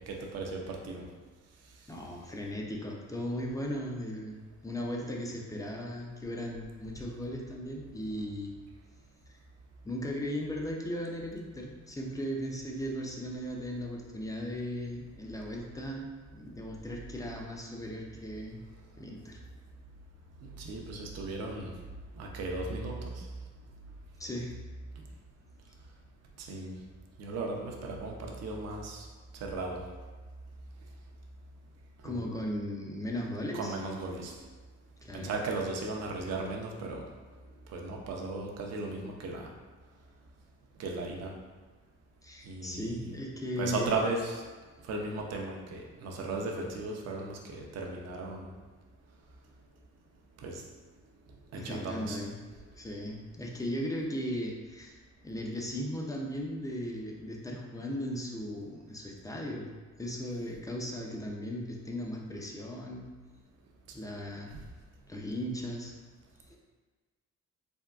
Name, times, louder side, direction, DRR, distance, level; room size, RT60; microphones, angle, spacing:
voice 1, 0.1-1.1 20.6-21.7 22.2-23.2 26.4-26.7 27.2-29.1 29.4-29.8 32.0-32.3 33.5-34.3 35.1-37.0 37.7-39.5 40.8-41.3 42.5-43.1 43.6-44.4 44.9-48.5 50.4-50.6 51.5-52.2, right 3 dB, 55° right, 0 dB, 0.5 m, -36 dB
voice 2, 1.9-8.6 9.8-16.1 16.3-18.6 19.0-19.4 24.2-24.5 32.0-33.8 35.0-35.3 42.2-44.0 51.5-52.4 52.8-59.7 60.0-63.1 63.9-64.5 65.1-65.9 66.5-66.6, equal, 10° left, -1 dB, 0.4 m, -37 dB
3.5 x 2.2 x 2.3 m, 1.4 s
cardioid pair, 90°, 30 cm